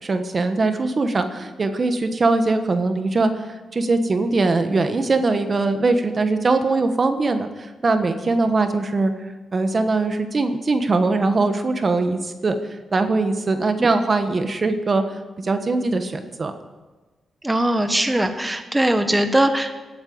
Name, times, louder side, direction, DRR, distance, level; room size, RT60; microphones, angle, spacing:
voice 1, 0.0-16.5, right 3 dB, 40° right, 8 dB, 1.2 m, -21 dB
voice 2, 17.4-19.8, right 1 dB, 10° right, 7 dB, 1.2 m, -21 dB
17.0 x 8.9 x 7.8 m, 1.2 s
cardioid pair, 100°, 0 cm